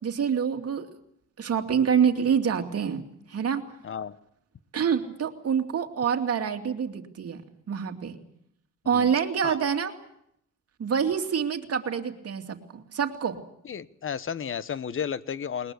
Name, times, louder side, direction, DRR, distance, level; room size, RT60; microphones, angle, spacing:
voice 1, 0.0-0.9 1.4-3.0 3.3-3.6 4.7-8.2 8.8-9.9 10.8-13.4, right 7 dB, 50° right, 2.6 m, -26 dB
voice 2, 3.8-4.1 8.9-9.1 9.4-9.6 13.6-15.7, left 7 dB, 45° left, 1.1 m, -33 dB
21.0 x 20.5 x 8.2 m
cardioid pair, 90°, 30 cm